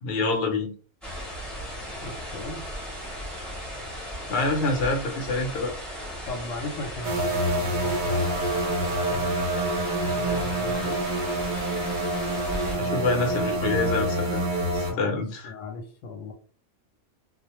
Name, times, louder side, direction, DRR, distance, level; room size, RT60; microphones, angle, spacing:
voice 1, 0.0-0.7 4.3-5.7 12.7-14.4 14.7-15.5, left 3 dB, 60° left, 3 dB, 0.8 m, -26 dB
sound 1, 1.0-12.8, equal, ahead, 0.8 m, -37 dB
voice 2, 2.0-2.7 6.2-9.3 10.0-11.1 14.9-16.3, left 2 dB, 85° left, 4 dB, 1.0 m, -38 dB
sound 2, 7.0-14.9, right 1 dB, 50° right, 0.7 m, -27 dB
2.5 x 2.1 x 2.9 m, 0.41 s
omnidirectional pair, 1.3 m